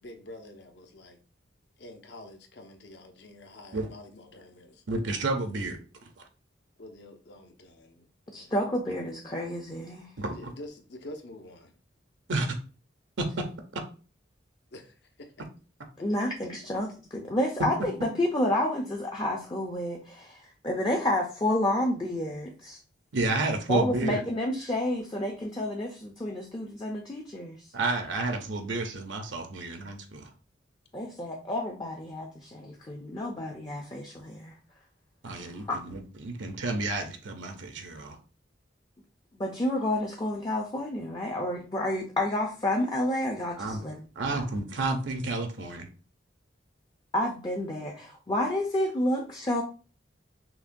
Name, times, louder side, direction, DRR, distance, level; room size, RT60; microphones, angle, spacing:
voice 1, 0.0-1.2 1.8-4.8 6.8-8.1 8.3-8.8 10.3-11.7 14.7-15.3, left 1 dB, 60° left, 5 dB, 0.7 m, -47 dB
voice 2, 4.9-5.8 6.2-6.3 10.2-10.5 12.3-12.5 13.2-13.3 23.1-24.2 27.7-30.3 35.2-38.2 43.6-43.9 44.2-45.9, right 2 dB, 75° right, 5 dB, 0.7 m, -30 dB
voice 3, 8.3-10.1 16.0-22.8 23.7-27.6 30.9-34.5 35.5-35.8 39.4-44.0 44.3-44.4 47.1-49.6, left 1 dB, 25° left, 0 dB, 0.4 m, -30 dB
5.8 x 2.2 x 2.6 m, 0.37 s
head